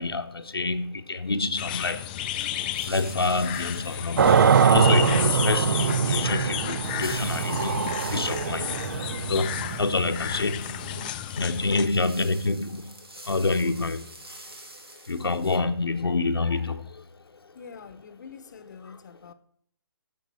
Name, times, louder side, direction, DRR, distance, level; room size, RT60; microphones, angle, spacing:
voice 1, 0.0-2.1 2.9-10.7 11.4-12.9 13.3-14.0 15.1-17.0, left 3 dB, 85° left, 0.8 m, -27 dB
sound 1, 1.6-11.9, left 11 dB, 25° left, 0.4 m, -33 dB
sound 2, 2.7-15.6, right 1 dB, 90° right, 2.2 m, -46 dB
sound 3, 4.2-11.1, right 7 dB, 55° right, 0.4 m, -23 dB
voice 2, 17.5-19.3, left 6 dB, 50° left, 0.8 m, -45 dB
11.0 x 6.7 x 4.1 m
figure-of-eight pair, 145°, 12 cm